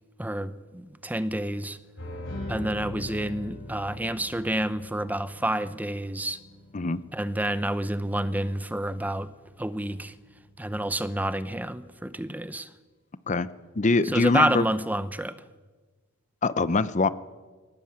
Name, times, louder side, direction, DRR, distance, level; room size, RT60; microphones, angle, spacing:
voice 1, 0.2-1.8 2.5-6.4 7.1-9.3 9.6-10.1 10.6-12.7 14.0-15.4, right 1 dB, 10° right, 14 dB, 0.7 m, -29 dB
sound 1, 2.0-9.6 10.1-10.5, left 1 dB, 70° left, 7.0 m, -42 dB
voice 2, 13.8-14.6 16.4-17.1, left 3 dB, 35° left, 16 dB, 0.7 m, -23 dB
21.5 x 19.0 x 8.8 m, 1.3 s
head